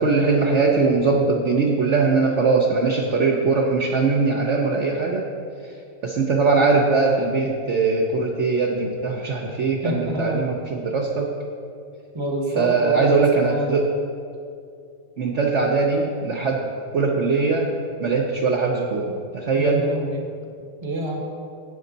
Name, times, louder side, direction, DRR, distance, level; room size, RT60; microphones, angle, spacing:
voice 1, 0.0-5.3 6.0-11.3 12.6-13.8 15.2-17.7 18.0-19.9, right 4 dB, 55° right, 0 dB, 0.9 m, -21 dB
voice 2, 9.8-10.5 12.1-13.7 19.6-20.3 20.8-21.2, right 1 dB, 20° right, 1 dB, 1.0 m, -27 dB
12.0 x 8.5 x 4.0 m, 2.4 s
omnidirectional pair, 2.1 m